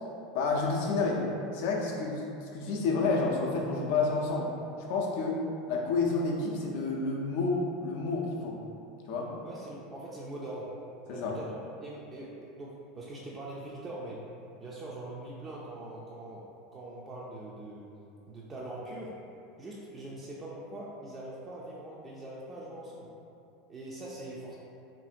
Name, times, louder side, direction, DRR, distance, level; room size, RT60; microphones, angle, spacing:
voice 1, 0.3-1.2 1.5-4.5 4.9-5.4 5.7-8.5 9.1-9.3 11.1-11.3, left 3 dB, 65° left, -2 dB, 0.4 m, -29 dB
voice 2, 9.4-10.8 11.1-11.5 11.8-14.2 14.6-16.4 16.7-17.9 18.3-19.2 19.6-23.1 23.7-24.5, right 1 dB, 25° right, -5 dB, 0.4 m, -42 dB
2.7 x 2.6 x 2.4 m, 2.7 s
hypercardioid pair, 85°, 0 cm